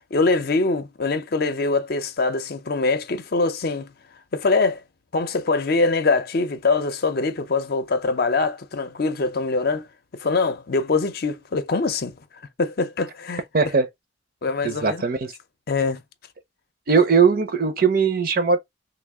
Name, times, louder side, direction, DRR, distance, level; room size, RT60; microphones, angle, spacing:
voice 1, 0.1-3.9 4.3-4.8 5.1-9.8 10.1-12.1 12.6-13.4 14.4-15.0 15.7-16.0, left 3 dB, 55° left, 0.6 m, -23 dB
voice 2, 13.5-13.9 14.6-15.3 16.9-18.6, right 5 dB, 50° right, 0.6 m, -19 dB
3.3 x 2.4 x 3.5 m
head